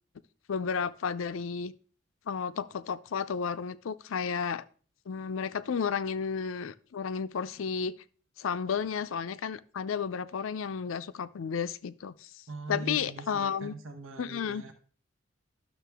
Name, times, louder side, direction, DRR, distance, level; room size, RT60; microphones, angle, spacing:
voice 1, 0.5-1.7 2.3-4.7 5.1-7.9 8.4-12.4 12.7-13.7 14.2-14.6, left 6 dB, 85° left, 0.5 m, -32 dB
voice 2, 12.5-14.7, right 2 dB, 80° right, 1.0 m, -41 dB
12.0 x 6.6 x 3.4 m
head